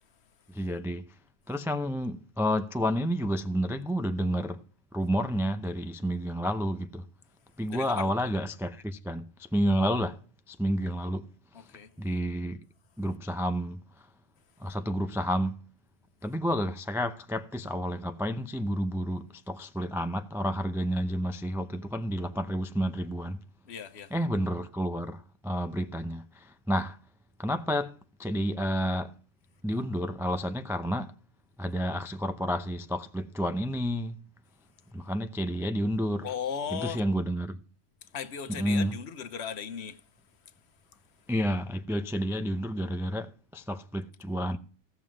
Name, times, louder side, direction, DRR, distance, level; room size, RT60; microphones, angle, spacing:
voice 1, 0.5-1.0 1.5-4.6 4.9-7.1 7.6-10.2 10.5-11.3 12.0-12.6 13.0-14.1 14.6-15.6 16.2-23.4 24.1-27.0 27.4-27.9 28.2-29.1 29.6-31.1 31.6-34.2 34.9-36.3 36.7-37.6 38.5-39.0 41.3-44.6, equal, 5° right, 0.5 m, -30 dB
voice 2, 7.7-8.1 11.5-11.9 23.6-24.1 36.2-37.0 38.0-40.0 40.4-40.5, left 7 dB, 75° left, 1.2 m, -37 dB
16.0 x 7.2 x 6.2 m
omnidirectional pair, 1.1 m